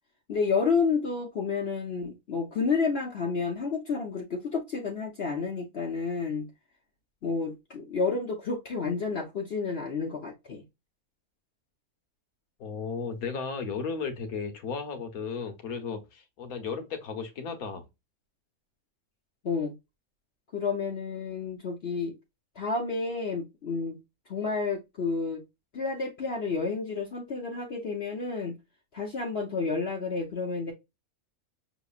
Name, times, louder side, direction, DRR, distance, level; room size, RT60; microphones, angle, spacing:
voice 1, 0.3-6.5 7.2-10.6 19.4-19.7 20.5-22.1 22.6-24.0 24.3-25.4 25.7-28.5 28.9-30.7, left 4 dB, 50° left, 1.0 m, -30 dB
voice 2, 12.6-17.8, left 5 dB, 70° left, 1.4 m, -35 dB
6.2 x 3.0 x 2.4 m
omnidirectional pair, 1.6 m